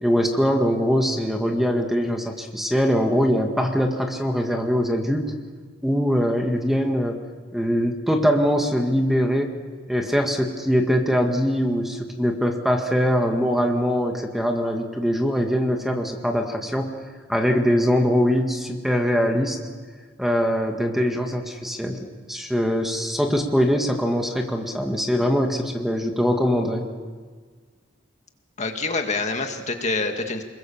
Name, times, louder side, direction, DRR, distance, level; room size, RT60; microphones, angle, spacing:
voice 1, 0.0-5.4 5.8-7.2 7.5-9.5 9.9-16.9 17.3-19.6 20.2-22.0 22.3-26.9, equal, ahead, 3 dB, 1.7 m, -22 dB
voice 2, 28.6-30.4, left 3 dB, 35° left, 5 dB, 1.9 m, -26 dB
28.5 x 21.5 x 7.1 m, 1.5 s
head